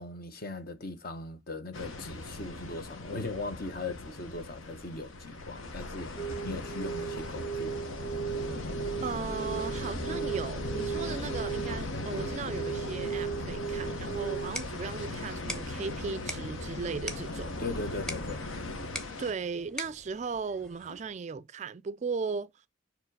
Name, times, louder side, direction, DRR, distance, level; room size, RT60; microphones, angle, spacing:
voice 1, 0.0-7.9 17.6-18.4, left 2 dB, 45° left, 1.0 m, -39 dB
sound 1, 1.7-19.3, left 2 dB, 80° left, 1.1 m, -38 dB
sound 2, 6.2-14.6, right 7 dB, 30° left, 0.6 m, -37 dB
voice 2, 9.0-17.5 19.2-22.5, right 5 dB, 35° right, 0.3 m, -37 dB
sound 3, 14.2-21.2, equal, 5° left, 1.0 m, -44 dB
7.2 x 3.1 x 4.7 m
head